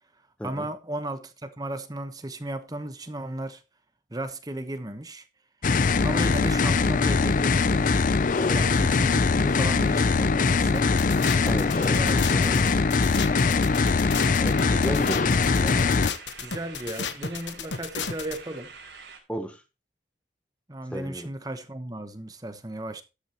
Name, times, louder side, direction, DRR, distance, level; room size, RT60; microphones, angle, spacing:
voice 1, 0.4-3.6 4.1-5.2 6.0-7.9 8.5-10.9 12.0-12.3 12.6-12.8 15.4-15.8 16.4-18.7 20.7-23.0, right 1 dB, 20° right, 1.0 m, -35 dB
sound 1, 5.6-16.1, left 4 dB, 45° left, 0.5 m, -22 dB
sound 2, 10.7-18.4, left 5 dB, 75° left, 1.2 m, -33 dB
voice 2, 11.4-12.6 14.4-15.3 19.3-19.6 20.9-21.3, equal, 5° left, 0.9 m, -33 dB
sound 3, 11.6-19.2, right 5 dB, 65° right, 4.2 m, -46 dB
13.0 x 8.9 x 3.0 m
head